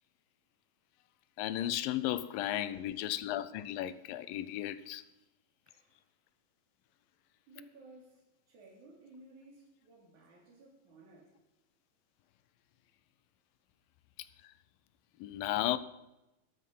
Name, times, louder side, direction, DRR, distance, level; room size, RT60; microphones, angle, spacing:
voice 1, 1.4-5.0 14.4-14.5 15.2-15.8, left 13 dB, 80° left, 2.4 m, -34 dB
voice 2, 2.6-3.0 5.7-6.1 7.5-11.3, right 2 dB, 60° right, 4.5 m, -57 dB
13.0 x 12.5 x 5.4 m
omnidirectional pair, 4.0 m